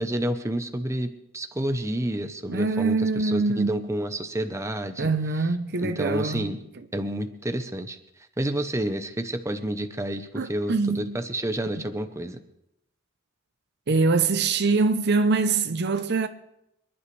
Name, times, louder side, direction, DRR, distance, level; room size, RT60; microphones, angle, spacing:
voice 1, 0.0-5.5 5.8-6.6 6.9-8.0 8.4-12.4, right 1 dB, 15° right, 0.7 m, -29 dB
voice 2, 2.5-3.9 5.0-6.5 10.4-11.2 13.9-16.3, right 4 dB, 50° right, 0.7 m, -24 dB
27.0 x 11.0 x 3.3 m
head